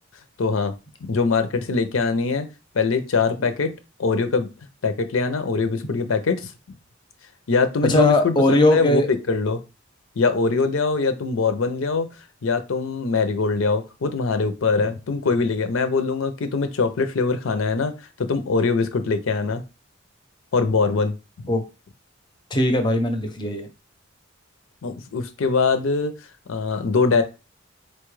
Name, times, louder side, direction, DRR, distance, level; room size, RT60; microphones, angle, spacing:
voice 1, 0.4-0.7 1.1-2.5 2.7-3.7 4.0-4.5 4.8-6.5 7.5-9.6 10.2-12.1 12.4-17.9 18.2-19.6 20.5-21.1 24.8-26.1 26.5-27.2, left 4 dB, 75° left, 9 dB, 0.5 m, -22 dB
voice 2, 7.8-9.1 21.5-21.6 22.5-23.7, left 1 dB, 20° left, 7 dB, 0.6 m, -19 dB
4.3 x 2.2 x 3.1 m, 0.29 s
head